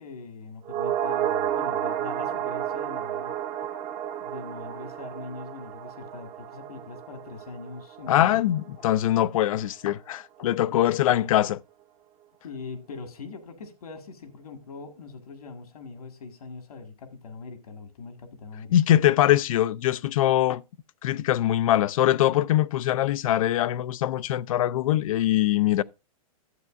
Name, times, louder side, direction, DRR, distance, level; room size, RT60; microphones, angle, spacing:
voice 1, 0.0-3.3 4.2-8.4 10.7-10.9 11.2-11.3 12.4-18.7, left 4 dB, 80° left, 2.0 m, -42 dB
sound 1, 0.6-9.1 9.4-9.5, right 10 dB, 30° right, 0.9 m, -32 dB
voice 2, 8.1-11.6 18.7-20.6 21.0-25.8, left 13 dB, 65° left, 0.5 m, -22 dB
12.5 x 8.0 x 2.5 m
hypercardioid pair, 140°, 19 cm